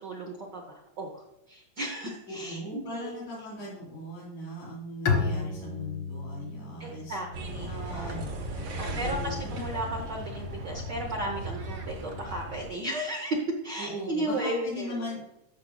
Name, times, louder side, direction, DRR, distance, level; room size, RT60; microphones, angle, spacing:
voice 1, 0.0-3.2 6.8-8.2 8.8-13.4 13.6-15.2, right 1 dB, 85° right, -1 dB, 0.9 m, -35 dB
voice 2, 2.3-7.2 7.6-8.3 8.8-9.5 13.8-15.3, left 1 dB, 90° left, -8 dB, 4.9 m, -38 dB
Bowed string instrument, 5.1-8.6, left 4 dB, 60° left, 1.6 m, -33 dB
sound 1, 7.3-12.7, right 1 dB, 60° right, 1.3 m, -36 dB
14.0 x 6.0 x 2.3 m, 0.86 s
omnidirectional pair, 3.6 m